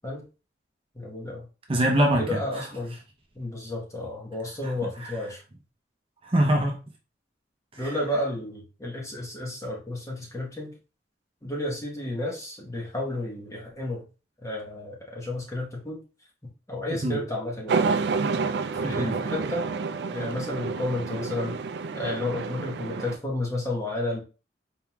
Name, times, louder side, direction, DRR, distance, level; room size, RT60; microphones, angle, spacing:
voice 1, 0.9-1.5 2.2-3.0 3.3-5.4 7.8-10.7 11.4-14.0 14.4-16.0 16.4-17.8 18.8-19.7 20.1-21.6 21.9-24.2, left 1 dB, 15° left, 1.1 m, -32 dB
voice 2, 1.7-2.7 4.6-4.7 5.0-5.2 6.2-6.8 7.7-8.0 16.9-17.2 18.8-19.2, right 1 dB, 30° right, 0.7 m, -24 dB
sound 1, 17.7-23.2, right 4 dB, 65° right, 0.4 m, -29 dB
4.4 x 3.7 x 2.3 m
head